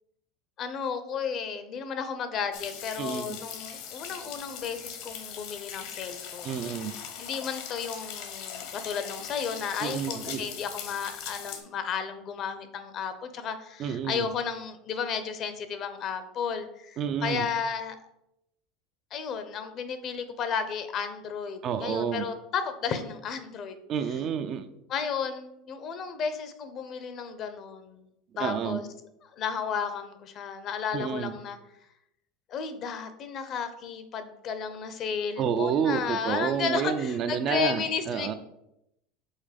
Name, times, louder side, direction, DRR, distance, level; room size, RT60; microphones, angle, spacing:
voice 1, 0.6-6.5 7.2-18.0 19.1-23.8 24.9-28.0 28.4-28.9 29.3-31.6 32.5-38.3, left 6 dB, 40° left, 10 dB, 0.7 m, -33 dB
sound 1, 2.5-11.6, left 8 dB, 65° left, 1.1 m, -40 dB
voice 2, 3.0-3.4 6.4-6.9 9.8-10.5 13.8-14.3 17.0-17.5 21.6-22.3 23.9-24.7 28.4-28.9 30.9-31.3 35.4-38.3, right 7 dB, 40° right, 9 dB, 0.5 m, -29 dB
5.6 x 4.0 x 5.1 m, 0.83 s
supercardioid pair, 130°, 0 cm